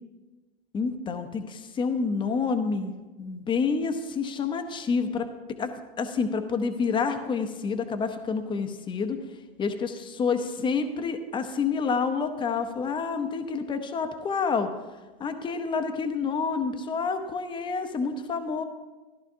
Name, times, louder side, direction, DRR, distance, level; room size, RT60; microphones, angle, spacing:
voice 1, 0.7-2.9 3.2-9.2 9.6-14.7 15.2-18.6, left 5 dB, 15° left, 8 dB, 0.8 m, -28 dB
14.0 x 11.0 x 2.7 m, 1.2 s
hypercardioid pair, 120°, 31 cm